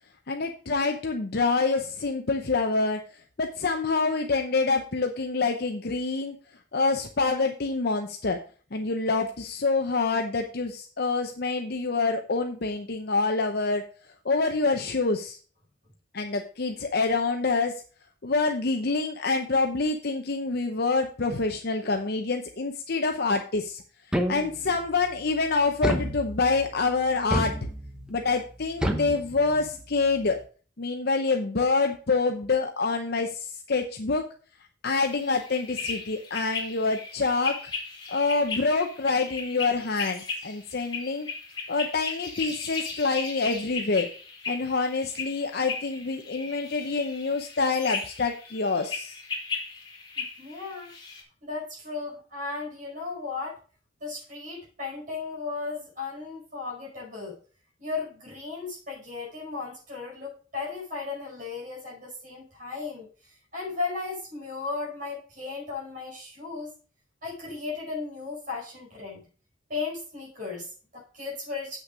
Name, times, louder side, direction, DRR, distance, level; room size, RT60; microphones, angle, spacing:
voice 1, 0.3-6.4 6.7-8.4 8.7-13.8 14.2-15.4 16.1-17.7 18.2-23.8 24.3-27.5 28.1-30.4 30.8-34.3 34.8-37.6 38.1-41.3 41.7-44.1 44.5-49.2, left 3 dB, 55° left, 4 dB, 0.7 m, -26 dB
sound 1, 24.1-24.8 25.8-26.7 27.3-28.1 28.8-29.8, equal, 5° right, 1.0 m, -29 dB
sound 2, 35.0-51.2, left 4 dB, 25° left, 2.7 m, -37 dB
voice 2, 50.1-50.9 51.4-53.6 54.0-57.4 57.8-66.7 67.2-69.2 69.7-71.8, left 4 dB, 45° right, -3 dB, 5.0 m, -35 dB
8.1 x 6.4 x 4.9 m, 0.39 s
head